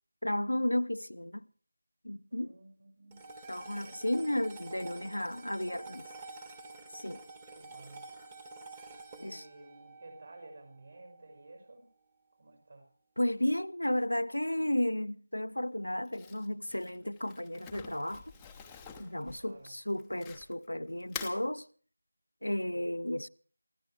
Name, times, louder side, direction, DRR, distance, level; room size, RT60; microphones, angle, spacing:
voice 1, 0.2-1.5 2.0-2.5 3.5-6.1 6.9-7.2 9.2-9.4 13.2-18.3 19.0-21.7 22.4-23.3, left 1 dB, 85° left, 0.7 m, -33 dB
voice 2, 2.3-3.2 3.8-4.3 7.5-8.1 9.1-11.9 12.4-12.9 19.4-19.8, right 2 dB, 50° right, 6.1 m, -53 dB
sound 1, 3.1-11.6, right 3 dB, 15° right, 1.6 m, -49 dB
Crumpling crinkling, 16.1-20.7 21.0-21.4, left 6 dB, 5° left, 0.8 m, -46 dB
23.5 x 15.5 x 3.4 m
figure-of-eight pair, 170°, 0 cm